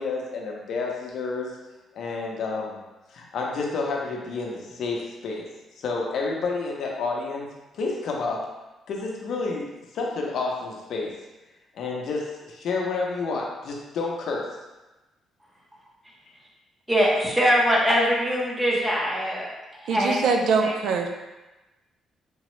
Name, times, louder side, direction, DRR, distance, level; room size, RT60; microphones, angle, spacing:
voice 1, 0.0-1.5 1.9-2.8 3.1-5.5 5.8-7.5 7.7-8.4 8.9-11.1 11.7-14.4, left 3 dB, 60° left, -1 dB, 0.5 m, -29 dB
voice 2, 16.9-19.5 19.8-20.1 20.6-20.7, equal, 10° right, -4 dB, 0.6 m, -22 dB
voice 3, 19.9-21.1, right 4 dB, 75° right, 3 dB, 0.3 m, -23 dB
3.5 x 2.0 x 3.0 m, 1.1 s
cardioid pair, 165°, 0 cm